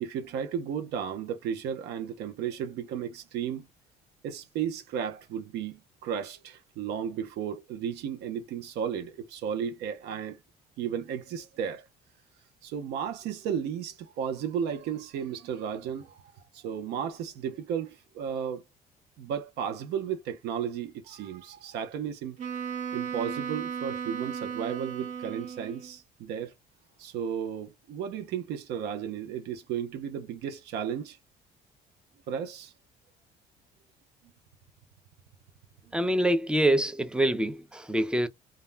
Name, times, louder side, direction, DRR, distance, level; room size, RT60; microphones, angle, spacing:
voice 1, 0.0-3.7 4.2-10.4 10.8-11.9 12.6-18.6 19.2-22.4 22.9-26.5 27.0-31.2 32.3-32.7 36.0-36.1, right 8 dB, 80° right, 0.6 m, -34 dB
Wind instrument woodwind instrument, 22.4-26.0, right 7 dB, 45° right, 0.9 m, -35 dB
voice 2, 35.9-38.3, right 1 dB, 5° right, 0.4 m, -25 dB
2.3 x 2.1 x 3.2 m
cardioid pair, 110°, 17 cm